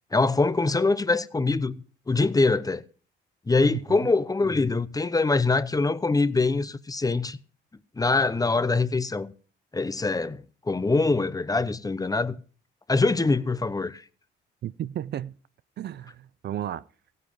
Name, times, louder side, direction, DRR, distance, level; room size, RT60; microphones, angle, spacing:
voice 1, 0.1-1.8 2.1-2.8 3.5-7.4 8.0-9.3 9.7-12.4 12.9-14.0, left 3 dB, 20° left, 0.8 m, -24 dB
voice 2, 3.7-4.1 14.6-15.4 15.8-16.9, right 11 dB, 60° right, 0.5 m, -33 dB
15.5 x 9.6 x 5.3 m
cardioid pair, 90°, 20 cm